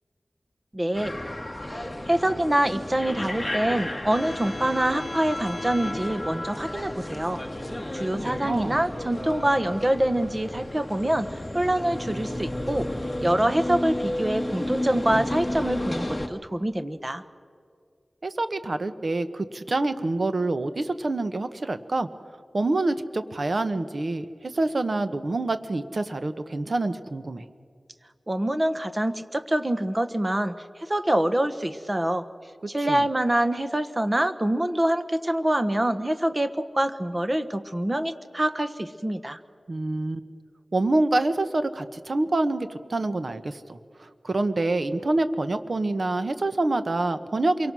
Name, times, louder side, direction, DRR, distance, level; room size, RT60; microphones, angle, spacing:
voice 1, 0.7-1.2 1.6-7.4 7.9-12.9 13.2-17.2 28.3-32.3 32.7-39.4, right 1 dB, 25° right, 10 dB, 1.2 m, -25 dB
sound 1, 0.9-16.3, left 1 dB, 15° left, 1.8 m, -32 dB
voice 2, 8.2-8.8 18.2-22.1 22.5-27.4 32.9-33.1 39.7-40.3 40.7-47.7, right 2 dB, 55° right, 10 dB, 1.2 m, -26 dB
27.0 x 23.5 x 6.3 m, 2.1 s
wide cardioid pair, 85°, 0 cm